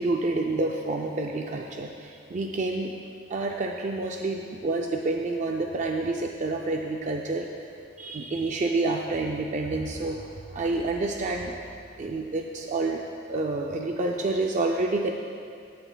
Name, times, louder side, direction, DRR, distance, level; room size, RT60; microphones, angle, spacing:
voice 1, 0.0-2.9 3.3-7.5 8.0-11.6 12.0-15.1, right 2 dB, 35° right, 2 dB, 0.4 m, -28 dB
15.5 x 8.0 x 2.2 m, 2.4 s
head